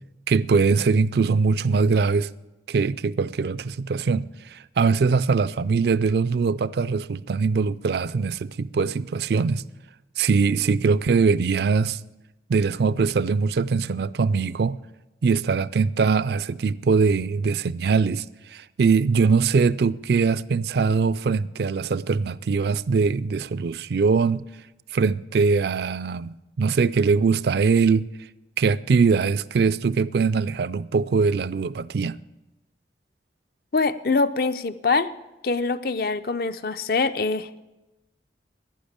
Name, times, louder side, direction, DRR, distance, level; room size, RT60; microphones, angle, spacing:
voice 1, 0.3-2.3 2.7-9.6 10.2-12.0 12.5-14.8 15.2-18.2 18.5-24.4 24.9-28.1 28.6-32.2, right 5 dB, 60° right, 0.4 m, -22 dB
voice 2, 33.7-35.1 35.4-37.6, left 4 dB, 55° left, 0.6 m, -24 dB
11.5 x 10.5 x 8.6 m
head